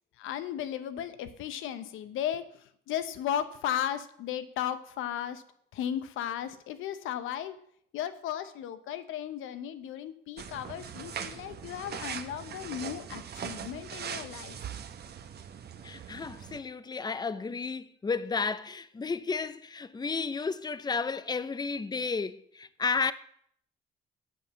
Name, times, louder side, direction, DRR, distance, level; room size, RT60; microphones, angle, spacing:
voice 1, 0.2-5.4 5.7-7.6 7.9-14.6, left 10 dB, 90° left, 0.9 m, -35 dB
sound 1, 10.4-16.6, right 8 dB, 55° right, 1.0 m, -41 dB
voice 2, 15.8-23.1, left 4 dB, 20° left, 0.6 m, -32 dB
8.4 x 7.3 x 7.0 m
cardioid pair, 90°, 20 cm